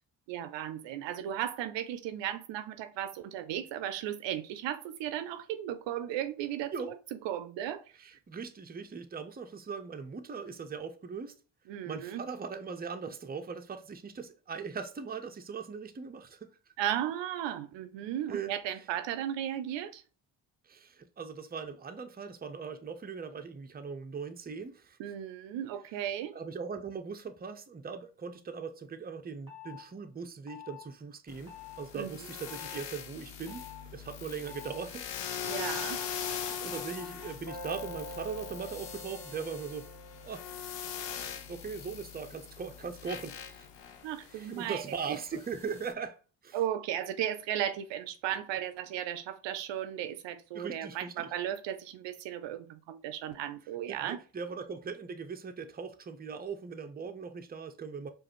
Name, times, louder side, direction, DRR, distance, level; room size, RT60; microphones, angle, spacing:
voice 1, 0.3-6.9 7.2-7.8 11.7-12.2 16.8-20.0 25.0-26.3 31.9-32.1 35.4-36.0 44.0-44.8 45.1-45.2 46.5-54.2, right 11 dB, 65° right, 0.5 m, -35 dB
voice 2, 8.0-11.4 11.9-16.6 18.3-18.5 20.6-25.0 26.3-33.7 33.9-35.1 35.5-35.7 36.5-39.9 40.2-40.4 41.5-43.7 44.3-46.6 50.5-51.3 53.9-58.1, right 5 dB, 20° right, 0.6 m, -40 dB
sound 1, 29.5-29.8 30.5-30.8 31.5-31.8 32.5-32.8 33.5-33.8 34.5-34.8 35.5-40.5, left 2 dB, 40° left, 1.9 m, -46 dB
sound 2, 31.3-45.9, left 8 dB, 60° left, 0.8 m, -41 dB
4.7 x 2.6 x 3.0 m
hypercardioid pair, 45°, 47 cm